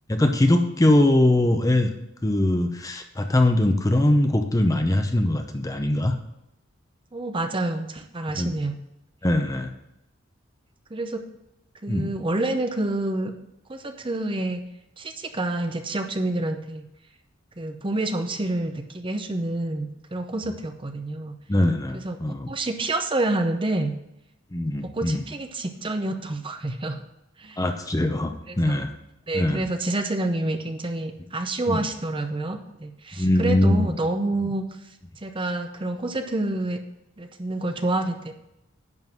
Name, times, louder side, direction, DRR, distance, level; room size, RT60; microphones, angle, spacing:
voice 1, 0.1-1.9 2.2-6.1 8.3-8.5 9.2-9.7 11.9-12.1 21.5-22.5 24.5-25.2 27.6-28.9 29.3-29.6 31.7-31.8 33.2-33.9, left 1 dB, 15° left, 5 dB, 0.6 m, -21 dB
voice 2, 7.1-8.8 10.9-11.2 11.8-13.3 13.7-14.6 15.0-16.8 17.6-21.4 22.0-23.9 24.8-27.0 27.4-27.6 28.5-28.8 29.3-34.7 35.2-36.8 37.2-38.3, right 2 dB, 25° right, 6 dB, 0.7 m, -28 dB
10.5 x 3.9 x 7.6 m, 0.84 s
head